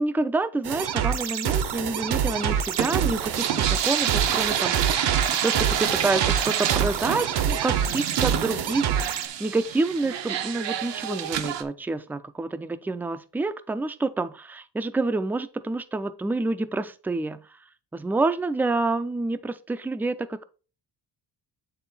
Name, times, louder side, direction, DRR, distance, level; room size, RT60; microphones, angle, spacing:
voice 1, 0.0-5.1 5.4-17.4 17.9-20.4, right 2 dB, 5° right, 12 dB, 0.4 m, -28 dB
sound 1, 0.6-9.3, right 8 dB, 65° right, 0.9 m, -27 dB
sound 2, 2.3-11.6, right 9 dB, 85° right, 1.0 m, -28 dB
9.0 x 3.8 x 4.2 m, 0.35 s
cardioid pair, 140°, 42 cm